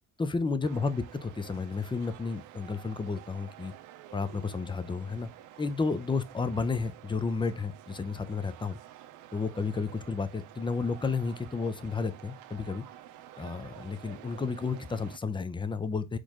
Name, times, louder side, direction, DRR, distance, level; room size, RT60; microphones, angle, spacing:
voice 1, 0.2-3.7 4.1-5.3 5.6-8.8 9.3-12.8 13.4-16.2, left 4 dB, 15° left, 0.5 m, -32 dB
sound 1, 0.6-15.2, right 12 dB, 90° right, 0.5 m, -50 dB
4.3 x 3.2 x 3.6 m
cardioid pair, 90°, 30 cm